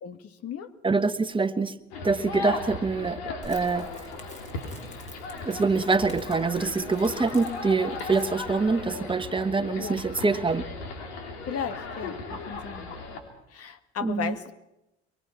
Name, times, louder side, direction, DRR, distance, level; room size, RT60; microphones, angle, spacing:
voice 1, 0.0-0.7 9.8-10.0 11.5-13.0 13.5-14.5, left 7 dB, 50° left, 10 dB, 2.0 m, -35 dB
voice 2, 0.8-1.7 2.0-3.9 5.4-10.6 14.0-14.3, right 4 dB, 15° right, 10 dB, 1.4 m, -25 dB
sound 1, 1.9-13.2, left 3 dB, 80° left, 3.5 m, -37 dB
Crackle, 3.4-8.9, left 2 dB, 20° left, 5.1 m, -48 dB
23.0 x 22.5 x 5.9 m, 0.89 s
hypercardioid pair, 70°, 32 cm